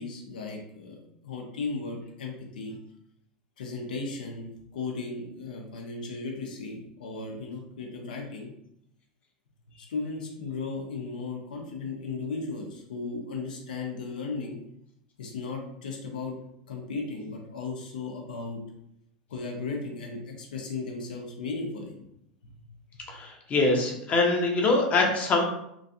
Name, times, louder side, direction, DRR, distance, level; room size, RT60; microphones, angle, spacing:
voice 1, 0.0-2.7 3.6-8.5 9.9-14.6 15.2-16.4 16.7-18.6 19.3-21.9 22.9-23.0, left 4 dB, 75° left, 1 dB, 0.7 m, -36 dB
voice 2, 23.1-25.4, left 3 dB, 35° left, 1 dB, 0.8 m, -24 dB
3.0 x 2.5 x 2.7 m, 0.76 s
hypercardioid pair, 90°, 5 cm